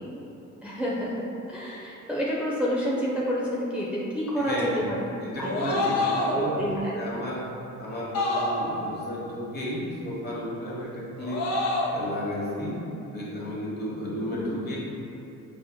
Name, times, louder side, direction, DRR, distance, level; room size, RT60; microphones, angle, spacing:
voice 1, 0.6-1.2 1.5-5.0 5.4-5.5 6.3-6.9 14.3-14.6, equal, 5° right, -7 dB, 0.4 m, -29 dB
voice 2, 4.3-4.8 5.2-6.5 6.9-7.5 7.8-11.4 11.9-12.8 13.1-14.8, equal, 35° left, -6 dB, 1.1 m, -33 dB
sound 1, 5.4-6.5 8.1-8.9 11.2-12.0, left 2 dB, 60° left, 0.6 m, -27 dB
5.3 x 2.8 x 2.2 m, 2.9 s
cardioid pair, 90°, 30 cm